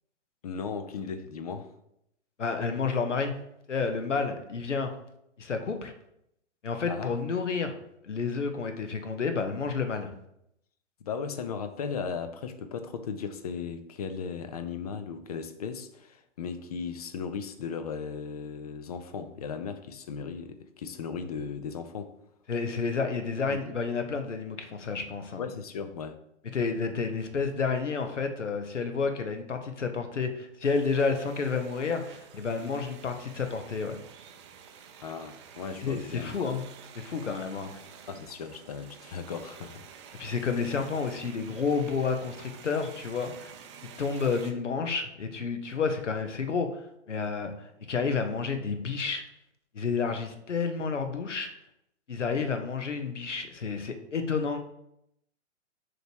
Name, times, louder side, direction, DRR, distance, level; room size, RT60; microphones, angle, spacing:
voice 1, 0.4-1.7 6.9-7.1 11.1-22.1 23.5-23.6 25.4-26.2 35.0-36.6 38.1-39.9, left 6 dB, 35° left, 0.4 m, -36 dB
voice 2, 2.4-3.3 3.7-4.9 5.4-5.9 6.6-7.8 8.0-10.1 22.5-25.4 26.5-34.0 35.8-36.6 36.9-37.7 40.2-43.5 44.0-49.2 49.7-51.5 52.1-54.6, left 5 dB, 80° left, 1.0 m, -30 dB
sound 1, 30.6-44.5, right 7 dB, 25° right, 0.5 m, -50 dB
6.4 x 3.2 x 4.5 m
figure-of-eight pair, 120°, 36 cm